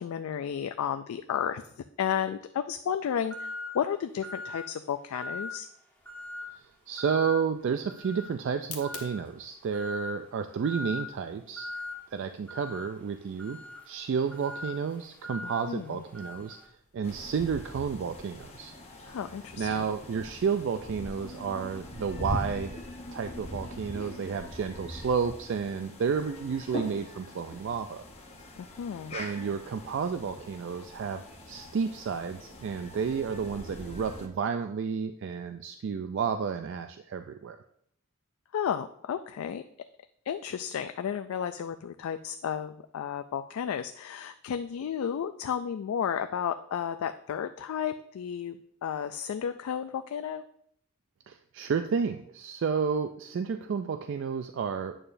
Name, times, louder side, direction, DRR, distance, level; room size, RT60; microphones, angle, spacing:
voice 1, 0.0-5.7 15.4-16.0 19.1-19.8 28.6-29.2 38.5-39.6 40.3-50.4, left 8 dB, 75° left, 9 dB, 0.3 m, -33 dB
sound 1, 3.3-3.8 4.2-4.7 5.1-5.6 6.1-6.5 7.0-7.4 7.9-8.3 8.8-9.3 9.7-10.2 10.6-11.1 11.6-12.0 12.5-16.6, left 2 dB, 10° left, 1.3 m, -40 dB
sound 2, 5.9-17.6, left 7 dB, 90° left, 1.4 m, -54 dB
voice 2, 6.5-11.7 12.1-13.6 13.9-16.6 16.9-18.7 19.6-22.8 23.1-28.0 29.1-31.2 31.5-37.6 51.3-55.0, right 6 dB, 55° right, 7 dB, 0.3 m, -31 dB
sound 3, 17.0-34.3, left 1 dB, 30° left, 0.9 m, -42 dB
8.8 x 6.7 x 2.6 m, 0.69 s
head